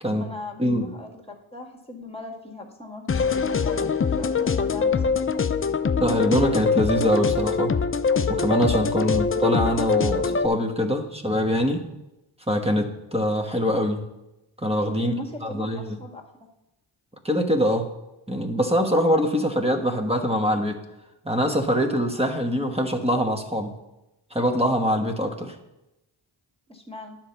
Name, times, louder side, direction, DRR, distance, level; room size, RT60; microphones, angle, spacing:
voice 1, 0.0-1.2 1.5-5.1 15.0-16.2 26.7-27.2, left 2 dB, 10° left, 1 dB, 1.9 m, -39 dB
voice 2, 0.6-0.9 6.0-7.7 8.3-11.9 12.5-14.0 14.6-15.1 15.5-16.0 17.2-17.9 18.3-20.8 21.2-23.7 24.3-25.5, equal, 10° right, 4 dB, 1.3 m, -23 dB
sound 1, 3.1-10.5, left 5 dB, 25° left, 0.5 m, -23 dB
9.9 x 4.4 x 6.8 m, 0.95 s
cardioid pair, 50°, 49 cm